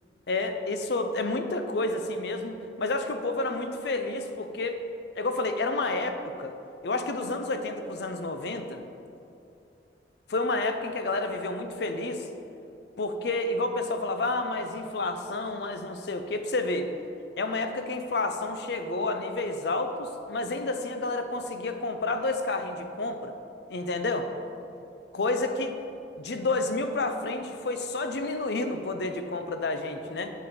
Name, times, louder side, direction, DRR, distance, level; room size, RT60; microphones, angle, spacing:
voice 1, 0.3-4.8 5.2-6.5 6.8-8.8 10.3-12.3 13.0-16.9 17.4-23.3 23.7-24.3 25.1-25.8 26.2-30.3, left 2 dB, 60° left, 7 dB, 0.5 m, -30 dB
7.1 x 6.4 x 4.1 m, 2.7 s
head